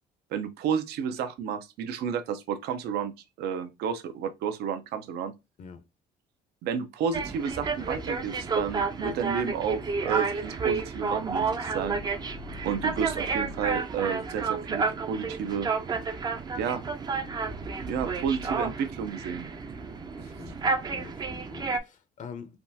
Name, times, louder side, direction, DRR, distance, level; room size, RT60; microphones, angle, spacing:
voice 1, 0.3-3.1 3.4-5.3 6.6-12.0 12.6-15.7 16.6-16.8 17.9-19.5, right 7 dB, 75° right, 0.5 m, -31 dB
sound 1, 7.1-21.8, right 4 dB, 25° right, 0.4 m, -31 dB
sound 2, 11.7-13.8 17.2-18.7, left 3 dB, 85° left, 0.8 m, -45 dB
voice 2, 20.2-20.5 20.9-22.6, left 6 dB, 50° left, 0.5 m, -45 dB
3.4 x 2.3 x 2.7 m
cardioid pair, 110°, 17 cm